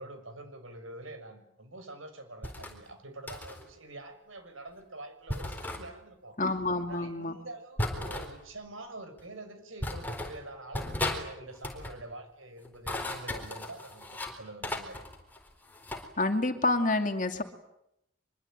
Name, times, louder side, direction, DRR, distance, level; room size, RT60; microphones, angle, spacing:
voice 1, 0.0-6.4 6.9-15.0, right 2 dB, 90° right, 8 dB, 6.3 m, -46 dB
sound 1, 2.4-2.8 3.3-3.6 5.3-5.8 7.8-8.3 9.2-9.3 9.8-10.4 10.7-11.2 11.5-12.0 12.6-14.3 14.6-16.1, left 1 dB, 10° left, 4.1 m, -35 dB
voice 2, 6.4-7.4 16.2-17.4, left 2 dB, 40° left, 6 dB, 2.6 m, -28 dB
25.0 x 23.0 x 9.1 m, 0.81 s
head